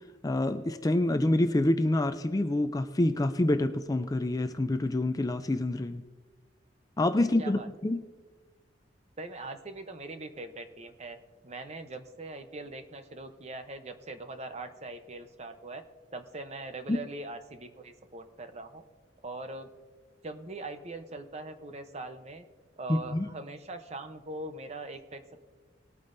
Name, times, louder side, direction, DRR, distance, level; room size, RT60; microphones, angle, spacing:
voice 1, 0.2-6.0 7.0-8.0 16.9-17.0 22.9-23.3, left 1 dB, 20° left, 9 dB, 0.4 m, -27 dB
voice 2, 7.2-7.7 9.2-11.2 11.4-15.8 16.1-18.8 19.2-19.7 20.2-22.5 22.8-25.4, right 2 dB, 35° right, 8 dB, 0.8 m, -41 dB
20.0 x 8.8 x 2.6 m, 1.4 s
head